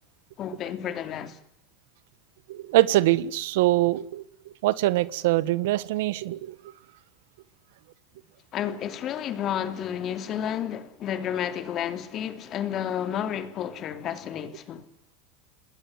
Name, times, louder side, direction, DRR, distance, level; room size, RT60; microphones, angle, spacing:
voice 1, 0.4-1.4 8.5-14.9, left 9 dB, 40° left, 3.0 m, -31 dB
voice 2, 2.5-6.6, right 17 dB, 70° right, 1.5 m, -24 dB
27.5 x 20.5 x 9.7 m
supercardioid pair, 110°, 0 cm